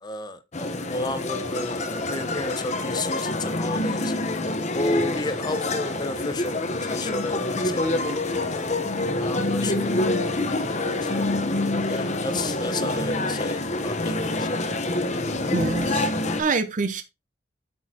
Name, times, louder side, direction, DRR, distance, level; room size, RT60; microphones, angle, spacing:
voice 1, 0.0-4.1 4.7-6.6 6.9-8.1 8.4-10.1 10.5-11.3 11.9-14.7 15.5-15.6, left 2 dB, 25° left, 0.8 m, -33 dB
sound 1, 0.5-16.4, left 2 dB, 40° left, 1.1 m, -26 dB
voice 2, 15.5-16.1 16.4-17.0, right 4 dB, 45° right, 0.7 m, -25 dB
8.5 x 6.2 x 2.9 m
head